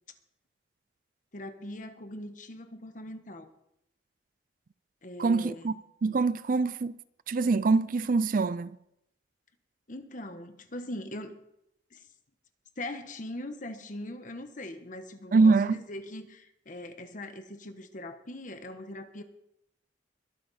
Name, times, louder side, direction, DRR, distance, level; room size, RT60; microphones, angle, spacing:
voice 1, 1.3-3.5 5.0-5.7 9.9-11.4 11.9-12.1 12.8-19.2, left 1 dB, 45° left, 1.3 m, -41 dB
voice 2, 5.2-5.7 6.0-7.0 7.3-8.8 15.3-15.8, right 4 dB, 50° right, 0.4 m, -24 dB
22.0 x 8.5 x 4.3 m
head